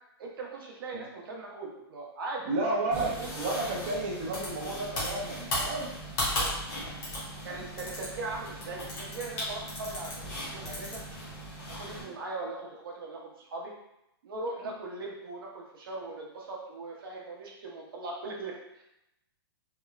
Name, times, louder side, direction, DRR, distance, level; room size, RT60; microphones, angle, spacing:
voice 1, 0.2-2.5 3.0-3.3 6.4-6.5 7.4-11.0 11.7-13.7 14.2-18.8, right 3 dB, 60° right, -1 dB, 0.7 m, -39 dB
voice 2, 2.4-3.1 3.4-5.9 7.5-7.6 12.0-12.1, right 2 dB, 25° right, -2 dB, 0.4 m, -32 dB
sound 1, 2.9-12.0, left 1 dB, 20° left, 0.7 m, -36 dB
2.9 x 2.0 x 2.3 m, 0.83 s
hypercardioid pair, 175°, 14 cm